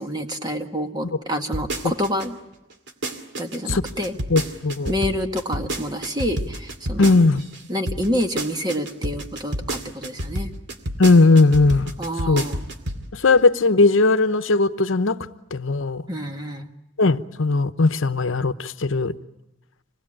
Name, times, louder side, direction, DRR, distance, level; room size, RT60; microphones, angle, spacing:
voice 1, 0.0-2.4 3.4-4.1 4.9-7.1 7.7-10.5 12.0-12.6 16.1-16.7, equal, 20° right, 1.7 m, -27 dB
sound 1, 1.5-2.3 2.7-7.6 7.9-13.0 13.4-13.5, right 1 dB, 60° right, 2.3 m, -29 dB
voice 2, 4.3-4.9 7.0-7.4 11.0-11.9 12.3-12.4 13.1-15.2 15.5-16.0 17.0-19.1, left 3 dB, 75° left, 0.9 m, -18 dB
26.5 x 20.0 x 8.8 m
head